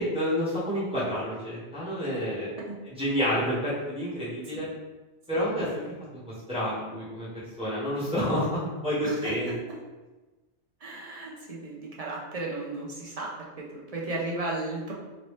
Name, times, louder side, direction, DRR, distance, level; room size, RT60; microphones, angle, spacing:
voice 1, 0.0-2.5 3.0-4.7 5.3-5.8 6.5-7.3 7.6-9.5, equal, 5° right, -11 dB, 1.2 m, -29 dB
voice 2, 9.0-9.5 10.8-13.3 13.6-14.9, right 2 dB, 45° right, -3 dB, 0.5 m, -35 dB
2.9 x 2.7 x 3.2 m, 1.2 s
omnidirectional pair, 1.2 m